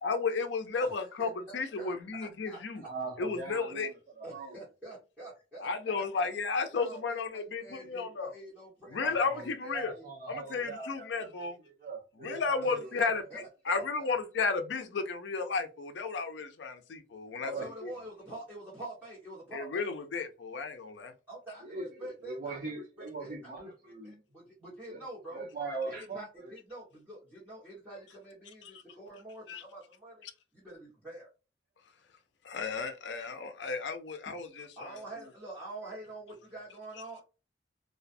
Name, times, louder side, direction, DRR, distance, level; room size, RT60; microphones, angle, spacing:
voice 1, 0.0-2.8 3.2-3.9 5.6-8.3 8.9-9.9 10.3-11.6 12.2-17.9 19.5-21.1 28.6-28.8 29.5-29.6 30.2-30.3 32.4-35.0, left 4 dB, 80° left, 0.5 m, -33 dB
voice 2, 1.2-2.9 4.2-6.3 6.7-10.1 12.6-13.4 13.7-14.1 17.4-19.9 21.3-22.7 23.0-25.5 25.9-30.2 30.5-31.3 34.8-37.2, right 1 dB, 5° right, 1.1 m, -46 dB
voice 3, 2.8-4.6 8.9-12.9 17.4-17.7 21.6-24.2 24.9-25.0 25.3-26.5 34.3-34.4 35.9-36.0, right 3 dB, 50° right, 1.0 m, -41 dB
2.3 x 2.2 x 2.5 m
head